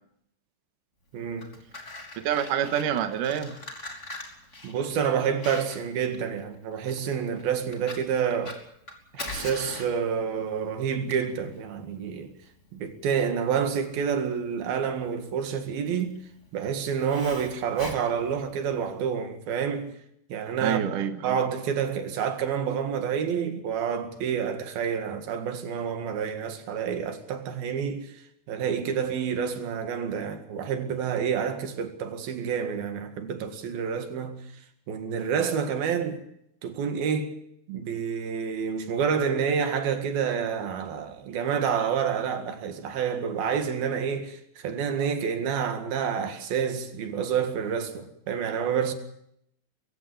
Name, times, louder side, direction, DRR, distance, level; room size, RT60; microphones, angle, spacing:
voice 1, 1.1-1.6 4.6-8.6 9.1-12.3 12.7-16.2 16.5-19.9 20.3-28.1 28.5-34.4 34.9-36.2 36.6-37.4 37.7-48.9, right 7 dB, 85° right, 3.8 m, -28 dB
Fire, 1.2-18.9, left 2 dB, 20° left, 3.5 m, -43 dB
voice 2, 2.2-3.6 20.6-21.4, right 9 dB, 70° right, 2.7 m, -27 dB
22.5 x 16.0 x 8.7 m
omnidirectional pair, 4.1 m